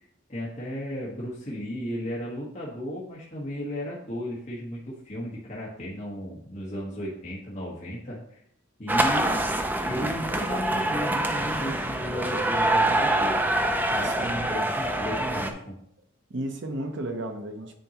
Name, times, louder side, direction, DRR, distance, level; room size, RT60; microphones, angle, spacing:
voice 1, 0.3-8.4 8.8-9.4 9.9-13.4 13.9-15.7, equal, 35° left, -7 dB, 1.4 m, -34 dB
sound 1, 8.9-15.5, right 1 dB, 10° right, 0.4 m, -25 dB
voice 2, 14.0-14.5 16.3-17.7, right 1 dB, 65° right, 6 dB, 0.8 m, -33 dB
9.1 x 4.5 x 3.0 m, 0.70 s
head